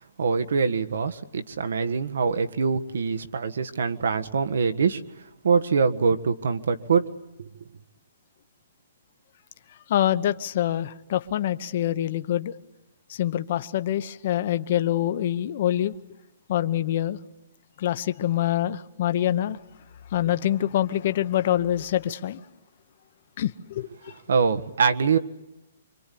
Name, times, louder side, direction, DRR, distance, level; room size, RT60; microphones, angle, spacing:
voice 1, 0.2-5.0 5.4-7.0 7.4-7.5 24.3-25.2, right 5 dB, 70° right, 1.6 m, -24 dB
voice 2, 9.9-12.5 13.1-15.9 16.5-17.2 17.8-19.6 20.1-22.4 23.4-24.1, left 12 dB, 35° left, 0.9 m, -25 dB
26.0 x 25.5 x 8.6 m
hypercardioid pair, 180°, 0 cm